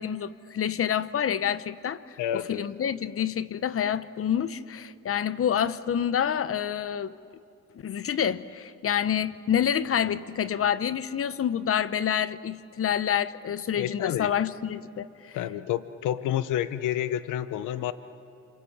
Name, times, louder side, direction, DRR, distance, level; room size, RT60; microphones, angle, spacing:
voice 1, 0.0-7.1 7.7-15.4, left 9 dB, 50° left, 0.9 m, -28 dB
voice 2, 2.2-2.6 13.8-14.3 15.3-17.9, left 11 dB, 85° left, 0.9 m, -29 dB
27.5 x 26.0 x 8.0 m
cardioid pair, 90°, 30 cm